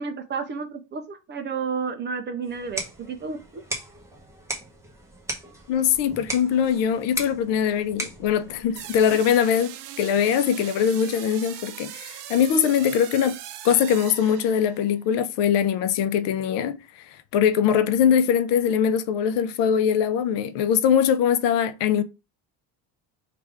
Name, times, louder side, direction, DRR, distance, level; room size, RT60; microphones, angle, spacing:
voice 1, 0.0-3.6, right 5 dB, 30° right, 0.3 m, -31 dB
sound 1, 2.4-9.4, right 1 dB, 5° right, 0.8 m, -37 dB
voice 2, 5.7-13.4 13.6-16.8 17.3-22.0, left 8 dB, 80° left, 0.6 m, -22 dB
sound 2, 8.8-14.9, right 11 dB, 75° right, 0.6 m, -40 dB
3.3 x 2.5 x 4.5 m
cardioid pair, 150°, 42 cm